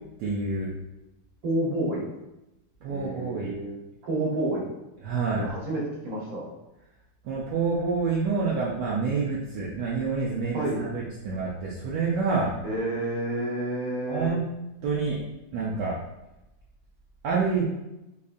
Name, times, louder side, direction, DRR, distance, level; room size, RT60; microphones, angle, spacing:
voice 1, 0.2-0.7 2.8-3.6 5.0-5.5 7.2-12.5 14.1-14.4 14.8-15.2 15.5-16.0 17.2-17.7, right 4 dB, 75° right, -5 dB, 1.2 m, -27 dB
voice 2, 1.4-2.1 2.9-3.8 4.0-4.7 5.3-6.4 10.5-10.8 12.6-14.3, right 1 dB, 55° right, -4 dB, 1.4 m, -29 dB
3.6 x 3.1 x 2.5 m, 0.96 s
omnidirectional pair, 1.9 m